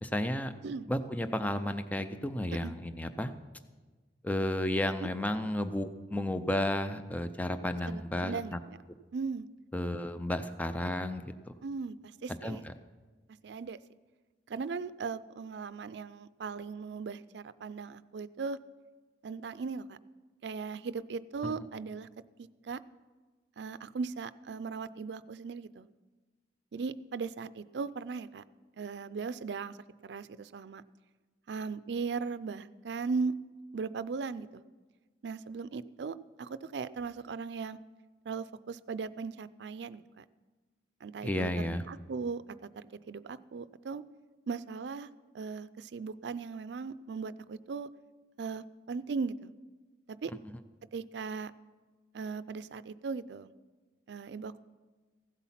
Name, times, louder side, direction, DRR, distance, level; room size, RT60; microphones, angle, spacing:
voice 1, 0.0-0.5 0.9-3.3 4.2-8.4 9.7-11.2 11.5-11.6 12.4-12.7 21.4-21.5 41.2-41.8, left 1 dB, 10° left, 10 dB, 0.5 m, -32 dB
voice 2, 7.9-8.8 9.1-9.5 11.6-12.0 12.2-12.6 13.4-13.8 14.5-18.6 19.2-20.0 20.4-22.1 22.4-22.8 23.6-25.9 26.7-28.4 28.7-29.8 30.0-30.8 31.5-33.4 33.7-34.6 35.2-37.8 38.3-40.2 41.0-42.4 42.7-44.0 44.5-47.9 48.4-49.5 50.1-50.3 50.9-51.5 52.1-53.5 54.1-54.6, right 5 dB, 75° right, 15 dB, 0.4 m, -38 dB
15.5 x 8.2 x 5.8 m, 1.3 s
head